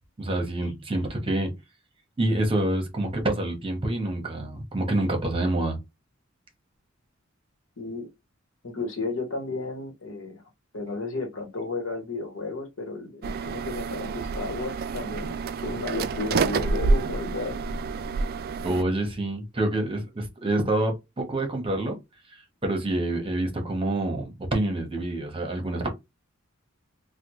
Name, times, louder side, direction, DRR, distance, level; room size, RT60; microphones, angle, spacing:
voice 1, 0.2-1.5 2.2-5.8 18.6-22.0 22.6-25.9, right 1 dB, 25° right, 1.0 m, -27 dB
voice 2, 7.8-8.1 8.6-10.4 10.7-15.4 15.6-17.6, left 3 dB, 70° left, 1.1 m, -33 dB
sound 1, 13.2-18.8, right 4 dB, 50° right, 0.3 m, -28 dB
3.3 x 2.2 x 3.0 m
head